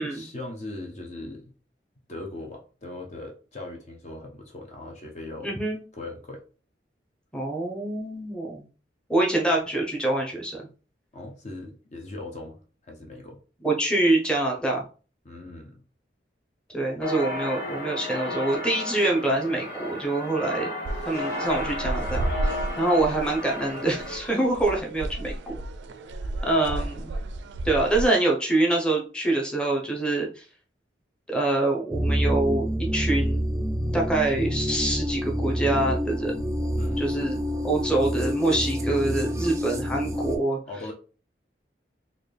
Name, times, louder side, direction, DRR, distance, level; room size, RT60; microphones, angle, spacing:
voice 1, 0.0-1.5 2.1-5.5 5.9-6.4 11.1-13.4 15.2-15.8 26.5-26.9 36.8-37.1 40.7-40.9, left 2 dB, 40° left, 0.6 m, -39 dB
voice 2, 5.4-5.8 7.3-8.6 9.1-10.7 13.6-14.8 16.7-20.7 21.1-25.5 26.4-27.0 27.6-30.4 31.3-32.6 32.9-33.4 33.9-36.3 37.0-37.4 37.6-40.6, right 2 dB, 5° left, 0.8 m, -25 dB
sound 1, 17.0-24.2, left 1 dB, 55° left, 1.5 m, -33 dB
sound 2, 20.9-28.1, right 2 dB, 80° right, 0.4 m, -33 dB
sound 3, 31.9-40.4, equal, 15° right, 0.4 m, -27 dB
4.1 x 2.3 x 3.3 m
head